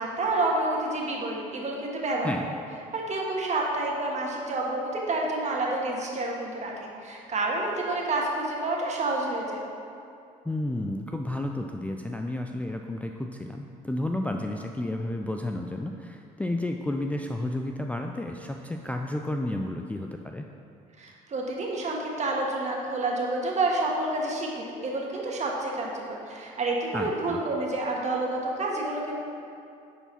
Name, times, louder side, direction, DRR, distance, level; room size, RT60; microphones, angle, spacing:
voice 1, 0.0-2.3 2.9-9.6 21.0-29.2, right 2 dB, 40° right, -2 dB, 1.7 m, -29 dB
voice 2, 10.4-20.5 26.9-27.4, left 1 dB, 10° left, 3 dB, 0.4 m, -32 dB
9.9 x 4.6 x 4.1 m, 2.5 s
hypercardioid pair, 65°, 18 cm